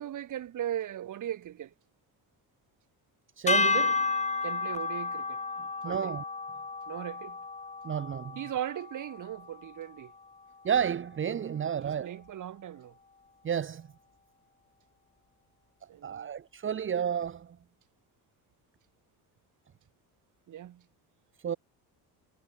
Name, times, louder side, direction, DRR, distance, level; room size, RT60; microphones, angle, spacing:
voice 1, 0.0-1.7 4.4-6.1 6.9-7.4 8.4-10.1 11.8-12.9 15.9-16.3 20.5-20.8, right 11 dB, 50° right, 5.6 m, -38 dB
voice 2, 3.4-4.0 5.8-6.2 7.8-8.4 10.6-12.2 13.4-13.9 16.0-17.6 21.4-21.6, right 8 dB, 30° right, 1.4 m, -31 dB
sound 1, 3.5-9.8, left 4 dB, 15° left, 3.3 m, -32 dB
cardioid pair, 155°, 40 cm